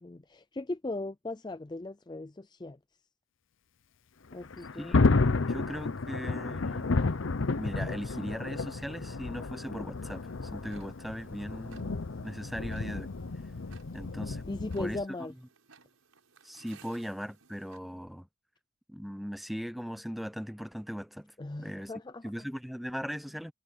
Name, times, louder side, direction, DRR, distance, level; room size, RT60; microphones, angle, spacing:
voice 1, 0.0-2.8 4.3-5.0 14.5-15.3 21.4-22.2, left 2 dB, 20° left, 0.4 m, -38 dB
Thunder, 4.3-15.0, left 3 dB, 65° left, 0.7 m, -31 dB
voice 2, 4.8-5.1 5.5-7.0 7.5-13.2 13.9-14.4 14.8-15.0 16.4-18.3 18.9-21.9 22.2-23.5, equal, ahead, 0.8 m, -39 dB
Tick-tock, 10.0-17.8, right 5 dB, 75° right, 5.6 m, -61 dB
head